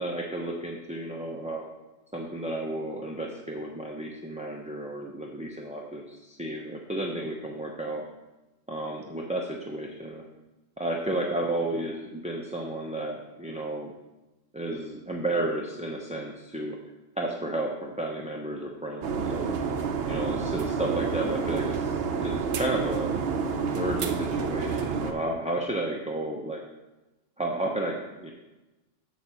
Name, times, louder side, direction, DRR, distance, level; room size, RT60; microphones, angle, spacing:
voice 1, 0.0-1.7 2.1-8.0 8.7-10.2 10.8-13.9 14.5-16.8 17.2-19.6 20.1-23.1 23.7-26.6 27.4-28.3, right 1 dB, 10° right, 0 dB, 0.5 m, -32 dB
sound 1, 19.0-25.1, right 5 dB, 55° right, 0.8 m, -29 dB
6.8 x 5.1 x 7.1 m, 1.1 s
omnidirectional pair, 1.3 m